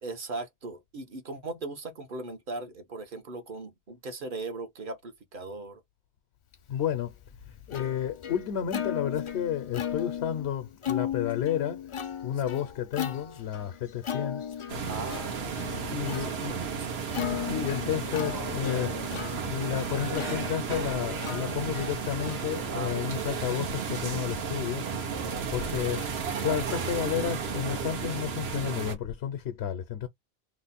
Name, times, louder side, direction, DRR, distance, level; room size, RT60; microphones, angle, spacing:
voice 1, 0.0-5.8 14.8-16.9 22.7-23.4, right 3 dB, 55° right, 1.0 m, -39 dB
voice 2, 6.7-7.1 7.7-11.9 12.2-14.4 15.9-16.6 17.3-24.9 25.5-30.1, left 9 dB, 75° left, 0.9 m, -32 dB
Plucked string instrument, 6.8-23.6, left 9 dB, 50° left, 0.4 m, -37 dB
sound 1, 14.7-28.9, right 6 dB, 75° right, 1.1 m, -33 dB
3.0 x 2.1 x 4.0 m
omnidirectional pair, 1.1 m